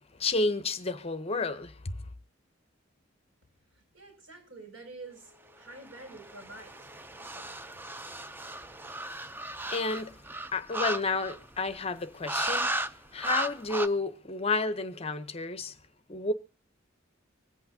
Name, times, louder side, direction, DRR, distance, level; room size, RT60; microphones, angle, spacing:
voice 1, 0.2-1.9 9.7-10.2 10.5-12.7 13.1-15.7 16.1-16.3, left 3 dB, 30° left, 0.8 m, -30 dB
voice 2, 3.7-6.9 7.2-7.5, right 2 dB, 80° right, 6.8 m, -48 dB
Wind instrument woodwind instrument, 5.0-9.2, left 5 dB, 30° right, 4.9 m, -64 dB
sound 1, 5.9-11.6 12.3-12.9 13.2-13.9, right 2 dB, 10° right, 0.5 m, -35 dB
25.0 x 8.5 x 2.7 m
head